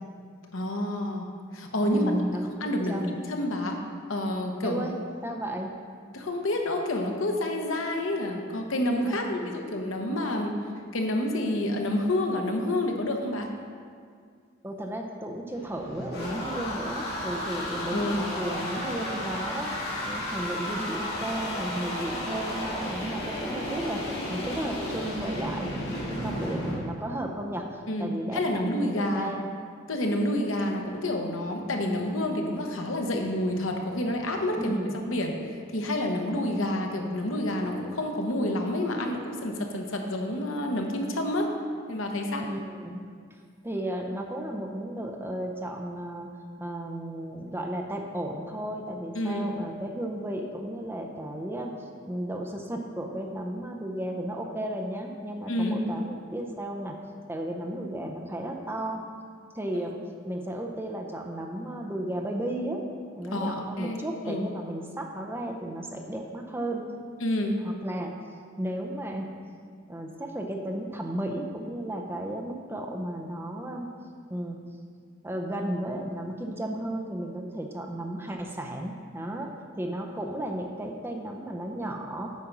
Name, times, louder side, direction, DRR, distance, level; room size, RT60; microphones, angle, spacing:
voice 1, 0.5-2.1 2.6-3.8 4.1-4.8 6.1-10.5 10.9-13.5 17.9-18.3 27.9-29.3 29.9-34.8 35.1-35.4 35.7-41.5 41.9-42.4 49.1-49.5 55.5-55.8 59.8-59.9 63.3-64.5 67.2-67.6, left 1 dB, 70° left, 2 dB, 1.0 m, -29 dB
voice 2, 1.8-3.2 4.6-4.9 5.2-5.7 9.0-9.6 14.6-19.7 20.0-25.8 26.1-29.4 34.6-35.0 42.4-43.0 43.6-46.3 46.6-57.0 57.3-59.0 59.5-60.0 60.3-62.8 63.2-66.8 67.6-68.1 68.6-69.3 69.9-73.9 74.3-74.6 75.2-82.3, right 1 dB, 10° right, 1 dB, 0.6 m, -34 dB
sound 1, 15.5-26.8, left 1 dB, 50° left, 2.1 m, -33 dB
8.5 x 5.3 x 5.9 m, 2.1 s
head